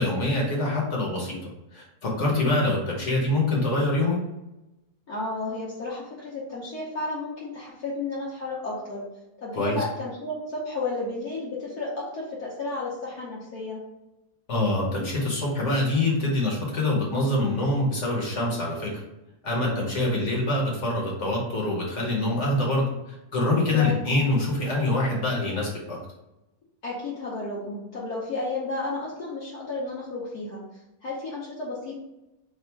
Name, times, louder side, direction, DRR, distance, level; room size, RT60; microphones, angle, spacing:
voice 1, 0.0-4.2 9.6-9.8 14.5-19.0 19.4-26.0, left 2 dB, 55° left, -3 dB, 1.2 m, -25 dB
voice 2, 5.1-9.0 9.4-13.8 23.7-24.0 26.8-30.6 31.0-32.0, left 2 dB, 75° left, -6 dB, 1.3 m, -32 dB
3.4 x 2.4 x 4.4 m, 0.93 s
omnidirectional pair, 1.7 m